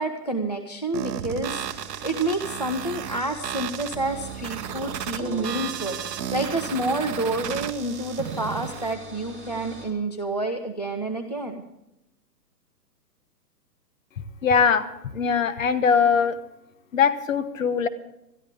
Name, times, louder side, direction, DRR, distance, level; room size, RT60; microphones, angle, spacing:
voice 1, 0.0-11.6, right 2 dB, 30° left, 4 dB, 0.4 m, -29 dB
sound 1, 0.9-8.9, right 10 dB, 80° right, 1.0 m, -34 dB
sound 2, 1.6-9.9, right 3 dB, 10° left, 1.6 m, -43 dB
voice 2, 14.4-14.8 15.1-16.4 16.9-17.9, left 6 dB, 55° left, 13 dB, 1.3 m, -21 dB
20.5 x 13.5 x 3.6 m, 0.88 s
hypercardioid pair, 175°, 49 cm